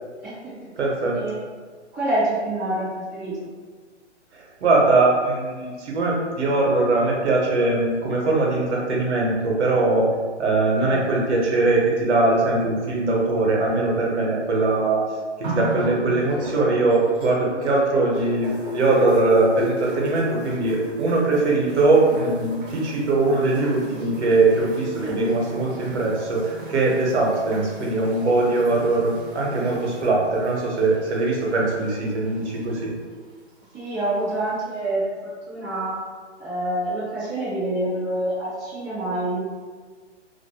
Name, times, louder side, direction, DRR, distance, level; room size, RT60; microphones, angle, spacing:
voice 1, 0.2-0.7 1.1-1.4 1.9-3.4 10.8-11.0 16.0-16.1 25.0-25.2 33.7-35.1 35.5-36.0 36.4-39.4, right 1 dB, 5° right, -15 dB, 0.4 m, -27 dB
voice 2, 0.8-1.2 4.3-10.1 10.4-15.0 15.4-32.9, right 2 dB, 70° right, -3 dB, 0.9 m, -21 dB
sound 1, 15.4-17.8 18.1-32.8 33.7-33.8, equal, 45° right, 0.6 m, -35 dB
2.5 x 2.1 x 2.7 m, 1.5 s
hypercardioid pair, 150°, 36 cm